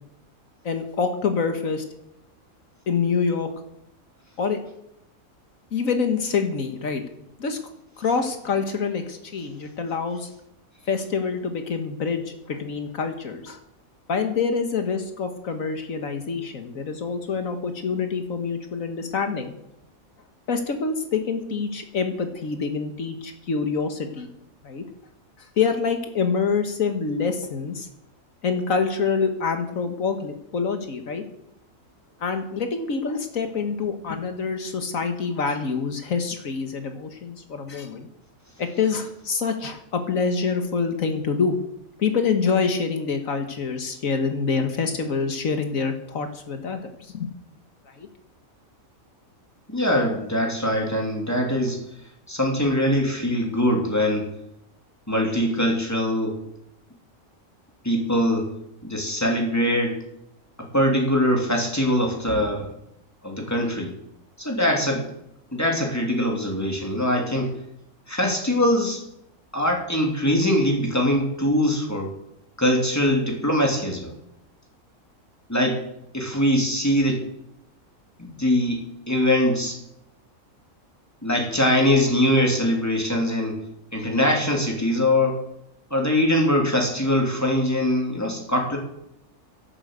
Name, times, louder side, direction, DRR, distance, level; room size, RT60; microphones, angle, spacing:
voice 1, 0.6-1.9 2.9-3.5 4.4-4.6 5.7-7.0 7.4-7.6 8.0-10.3 10.9-13.6 14.1-19.6 20.5-24.3 24.6-24.8 25.4-27.9 28.4-31.2 32.2-38.1 38.6-41.5 42.0-47.3 47.9-48.1, left 5 dB, 75° left, 7 dB, 1.8 m, -26 dB
voice 2, 49.7-51.8 52.3-54.3 55.1-56.4 57.8-58.5 58.8-60.0 60.6-62.7 63.2-63.9 64.4-65.0 65.5-67.6 68.1-69.0 69.5-72.1 72.6-74.1 75.5-75.8 76.1-77.2 78.2-79.8 81.2-83.6 83.9-85.4 85.9-88.8, left 1 dB, 10° left, 1 dB, 3.0 m, -22 dB
11.5 x 11.0 x 8.1 m, 0.80 s
omnidirectional pair, 1.4 m